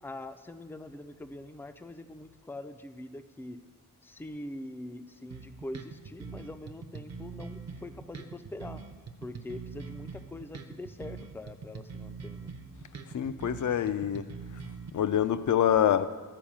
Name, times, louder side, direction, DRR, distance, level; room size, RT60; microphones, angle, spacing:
voice 1, 0.0-3.6 4.0-8.8 9.2-12.5, left 1 dB, 5° left, 0.3 m, -43 dB
sound 1, 5.3-14.9, right 5 dB, 50° right, 0.7 m, -43 dB
voice 2, 13.1-14.3 14.9-16.1, left 10 dB, 60° left, 0.5 m, -26 dB
11.5 x 4.7 x 7.2 m
wide cardioid pair, 155°, 34 cm